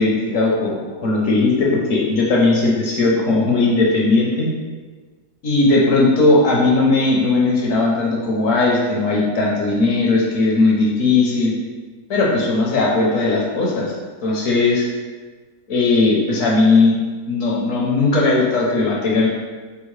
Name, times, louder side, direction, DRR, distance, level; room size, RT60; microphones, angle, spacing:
voice 1, 0.0-4.5 5.4-11.5 12.1-13.9 14.2-14.9 15.7-16.9 17.3-19.3, left 3 dB, 60° left, -3 dB, 0.9 m, -17 dB
3.8 x 3.5 x 3.2 m, 1.4 s
omnidirectional pair, 1.8 m